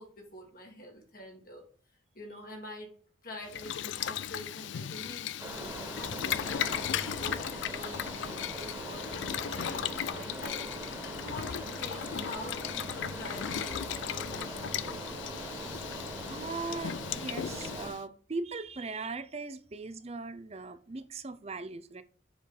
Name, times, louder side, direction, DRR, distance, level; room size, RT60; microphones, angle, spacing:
voice 1, 0.0-1.6 2.1-2.9 3.2-7.4 7.7-15.3, left 1 dB, 45° left, 1.8 m, -46 dB
Boiling, 3.5-18.0, left 9 dB, 70° left, 0.4 m, -37 dB
sound 1, 5.4-17.9, right 1 dB, 15° right, 1.6 m, -41 dB
voice 2, 16.3-22.0, right 3 dB, 30° right, 0.6 m, -39 dB
7.1 x 4.6 x 3.8 m
head